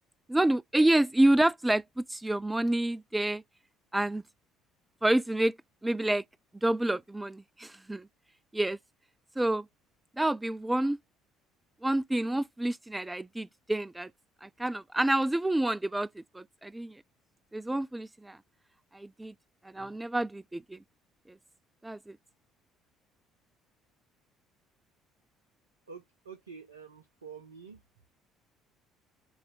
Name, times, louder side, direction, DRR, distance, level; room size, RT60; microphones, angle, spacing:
voice 1, 0.3-3.4 3.9-4.2 5.0-5.5 5.8-6.2 6.6-8.1 8.5-8.8 9.4-9.6 10.2-11.0 11.8-14.1 14.4-17.0 17.5-18.4 18.9-19.3 19.6-20.8 21.8-22.2, right 1 dB, 10° right, 0.3 m, -28 dB
voice 2, 25.9-27.8, right 6 dB, 80° right, 0.6 m, -48 dB
7.0 x 2.6 x 5.5 m
figure-of-eight pair, 50°, 0 cm